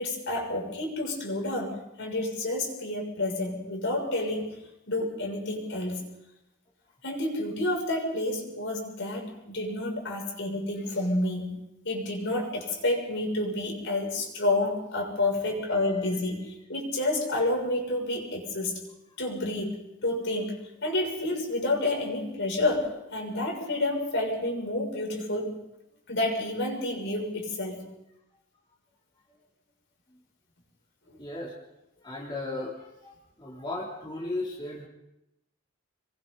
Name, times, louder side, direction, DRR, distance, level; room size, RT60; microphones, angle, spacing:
voice 1, 0.0-4.5 4.9-6.0 7.0-11.6 11.8-18.8 19.2-25.6 26.1-27.8 31.1-31.2, left 2 dB, 60° left, 0 dB, 7.0 m, -29 dB
voice 2, 31.2-31.5 32.0-32.7 33.0-33.1 33.4-34.8, left 2 dB, 25° left, -4 dB, 3.5 m, -35 dB
28.0 x 23.0 x 4.1 m, 0.86 s
head